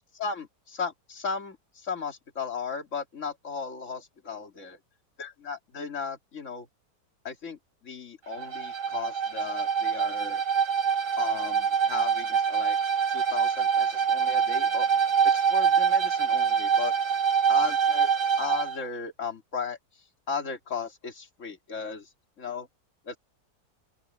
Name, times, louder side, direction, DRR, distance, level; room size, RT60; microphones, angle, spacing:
voice 1, 0.1-4.8 5.2-6.7 7.2-10.4 11.2-12.8 13.1-14.9 15.2-16.9 17.5-18.1 18.4-19.8 20.3-22.1 22.4-22.7 23.0-23.2, left 5 dB, 45° left, 2.9 m, -36 dB
Bowed string instrument, 8.3-18.8, right 7 dB, 70° right, 3.2 m, -25 dB
open air
omnidirectional pair, 1.9 m